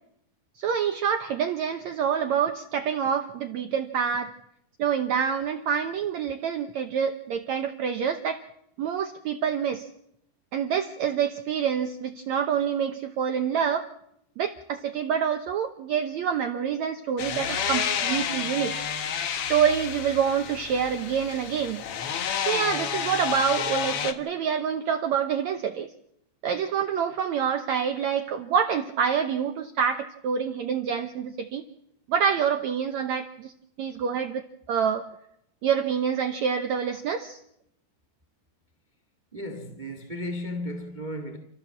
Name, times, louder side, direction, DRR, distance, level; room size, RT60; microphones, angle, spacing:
voice 1, 0.6-4.3 4.8-8.4 8.8-9.9 10.5-13.9 14.4-18.8 19.5-21.8 22.5-25.9 26.4-31.6 32.1-33.5 33.8-35.1 35.6-37.4, right 7 dB, 90° right, 1.6 m, -27 dB
sound 1, 17.2-24.1, left 8 dB, 85° left, 1.2 m, -30 dB
voice 2, 39.3-41.4, left 1 dB, 30° right, 0.7 m, -34 dB
29.0 x 14.0 x 7.3 m
omnidirectional pair, 4.6 m